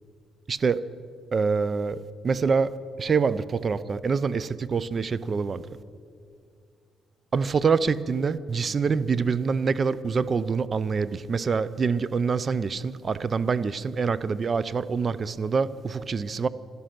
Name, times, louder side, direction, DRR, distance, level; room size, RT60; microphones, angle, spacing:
voice 1, 0.5-0.8 1.3-2.7 3.0-5.6 7.3-16.5, right 5 dB, 40° right, 0.5 m, -25 dB
16.5 x 13.0 x 6.0 m
cardioid pair, 90°, 0 cm